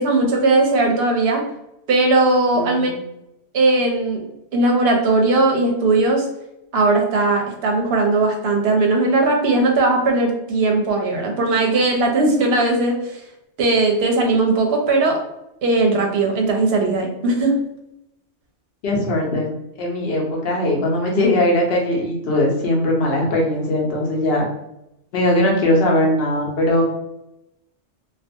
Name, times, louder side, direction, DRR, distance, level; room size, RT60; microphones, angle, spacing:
voice 1, 0.0-1.4 1.9-2.9 3.5-4.2 4.5-6.3 6.7-13.0 13.6-15.2 15.6-17.5, right 2 dB, 65° right, 2 dB, 0.8 m, -18 dB
voice 2, 2.6-3.0 18.8-19.5 19.8-24.4 25.1-26.8, left 1 dB, 60° left, -1 dB, 0.9 m, -20 dB
2.5 x 2.2 x 2.5 m, 0.84 s
omnidirectional pair, 1.2 m